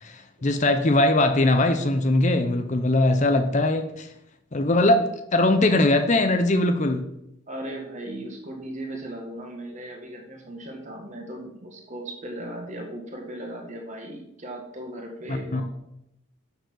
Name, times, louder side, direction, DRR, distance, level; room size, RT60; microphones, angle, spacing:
voice 1, 0.0-4.1 4.5-7.1 15.3-15.6, left 2 dB, 35° left, 7 dB, 0.6 m, -21 dB
voice 2, 7.5-15.6, right 1 dB, 35° right, 1 dB, 1.9 m, -37 dB
7.0 x 6.6 x 6.3 m, 0.81 s
head